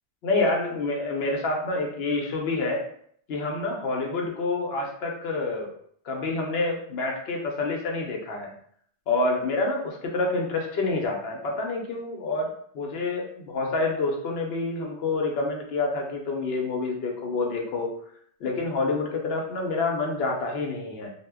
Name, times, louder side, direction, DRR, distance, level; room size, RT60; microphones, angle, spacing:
voice 1, 0.2-2.8 3.3-5.7 6.1-8.5 9.1-17.9 18.4-21.1, left 3 dB, 70° left, 0 dB, 0.8 m, -27 dB
2.1 x 2.0 x 3.4 m, 0.63 s
omnidirectional pair, 1.1 m